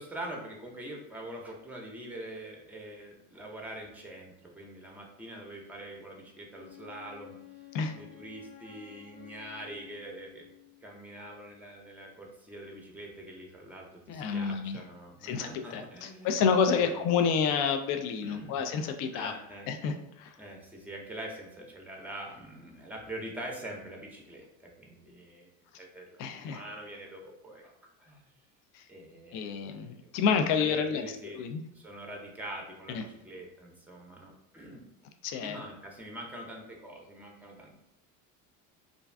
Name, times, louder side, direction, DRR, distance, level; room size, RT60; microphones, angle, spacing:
voice 1, 0.0-7.4 7.9-10.5 10.8-16.4 16.7-17.3 18.2-18.6 19.1-19.7 20.4-25.5 25.8-27.7 28.0-28.3 28.9-29.5 30.6-31.4 31.7-34.8 35.4-37.7, right 1 dB, 5° right, 0 dB, 0.6 m, -44 dB
Wind instrument woodwind instrument, 6.5-10.9, left 14 dB, 80° left, 0.9 m, -52 dB
voice 2, 14.1-14.8 15.2-19.3 19.7-20.3 26.2-26.6 28.7-28.8 29.3-31.6 32.9-33.0 35.2-35.6, left 6 dB, 50° left, 7 dB, 0.4 m, -29 dB
2.5 x 2.3 x 3.3 m, 0.85 s
hypercardioid pair, 85°, 44 cm